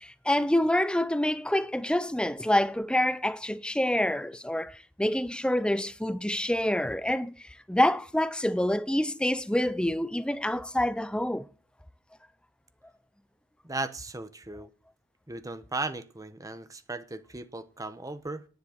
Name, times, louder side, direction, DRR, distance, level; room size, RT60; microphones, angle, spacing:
voice 1, 0.0-7.3 7.7-11.5, left 1 dB, 5° left, 0.6 m, -27 dB
voice 2, 13.6-14.7 15.3-18.5, right 2 dB, 15° right, 1.0 m, -36 dB
10.5 x 10.5 x 6.6 m
head